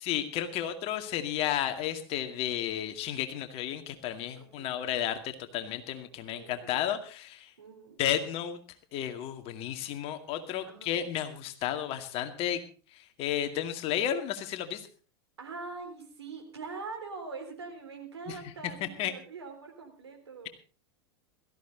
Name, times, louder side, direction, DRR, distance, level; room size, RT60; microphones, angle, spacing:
voice 1, 0.0-7.5 8.0-8.6 8.9-12.6 13.2-14.8 18.3-18.4 19.0-19.1, left 10 dB, 45° left, 7 dB, 2.2 m, -32 dB
voice 2, 4.3-4.7 6.3-6.8 7.6-8.0 10.6-11.0 15.4-20.5, right 4 dB, 85° right, 4 dB, 3.8 m, -43 dB
17.0 x 14.5 x 3.9 m, 0.38 s
hypercardioid pair, 95°, 14 cm